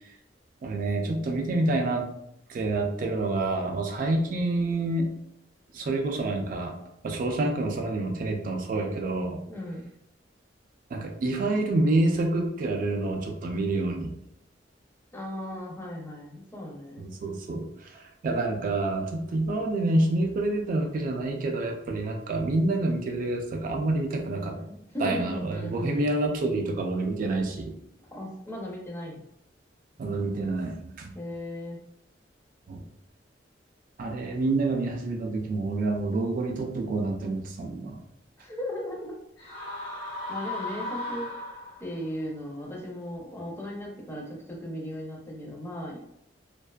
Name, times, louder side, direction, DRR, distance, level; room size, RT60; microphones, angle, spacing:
voice 1, 0.6-2.1 2.5-5.1 5.7-6.8 7.0-9.4 10.9-14.1 17.0-24.5 25.0-27.7 30.0-31.1 32.7-32.8 34.0-38.0, right 2 dB, 50° right, 2 dB, 0.3 m, -28 dB
voice 2, 9.5-9.9 15.1-17.1 24.3-26.0 28.1-29.2 31.1-31.8 38.4-39.7 40.3-41.3 41.8-46.0, left 1 dB, 15° left, -1 dB, 0.5 m, -37 dB
sound 1, 39.4-42.0, left 2 dB, 70° left, 0.7 m, -36 dB
2.4 x 2.3 x 2.2 m, 0.75 s
head